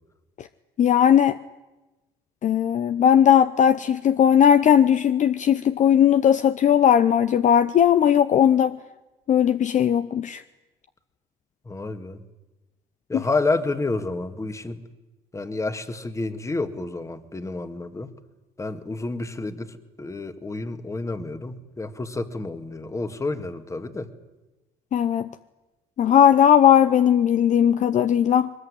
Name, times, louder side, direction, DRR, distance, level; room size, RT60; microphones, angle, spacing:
voice 1, 0.8-1.4 2.4-8.8 9.3-10.4 13.1-13.2 24.9-25.3 26.0-28.5, left 9 dB, 45° left, 12 dB, 0.8 m, -18 dB
voice 2, 11.7-12.2 13.1-14.8 15.3-18.1 18.6-24.1, left 3 dB, 20° left, 10 dB, 1.9 m, -29 dB
22.0 x 20.5 x 9.8 m, 1.1 s
cardioid pair, 110°, 17 cm